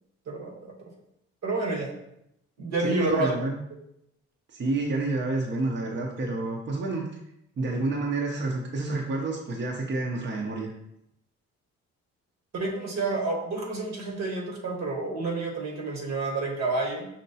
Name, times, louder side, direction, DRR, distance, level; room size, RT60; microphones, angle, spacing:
voice 1, 0.3-0.7 1.4-1.9 2.6-3.3 12.5-17.1, right 3 dB, 65° right, 1 dB, 1.1 m, -29 dB
voice 2, 2.8-3.6 4.5-7.1 7.6-10.7, right 2 dB, 40° right, -1 dB, 0.7 m, -29 dB
5.5 x 2.9 x 2.7 m, 0.79 s
cardioid pair, 90°, 30 cm